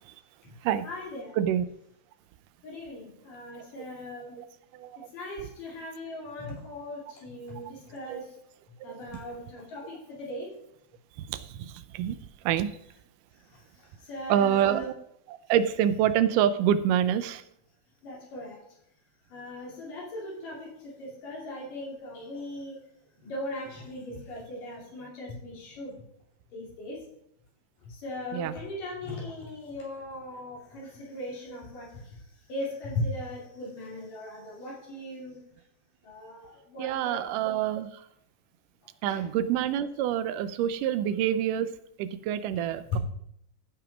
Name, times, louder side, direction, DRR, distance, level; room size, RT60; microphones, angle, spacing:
voice 1, 0.8-1.3 2.6-4.4 5.1-8.2 8.8-10.6 13.5-14.9 18.0-18.6 19.3-22.8 23.2-26.0 26.5-27.1 27.8-32.2 32.5-35.4 36.0-37.2 39.1-39.2 42.9-43.0, left 1 dB, 85° left, -3 dB, 5.1 m, -38 dB
voice 2, 11.2-12.2 12.5-12.7 14.3-14.9 15.3-17.4 28.3-28.6 36.8-37.9 39.0-43.0, right 10 dB, 85° right, 13 dB, 2.2 m, -26 dB
14.5 x 5.9 x 5.0 m, 0.72 s
omnidirectional pair, 3.7 m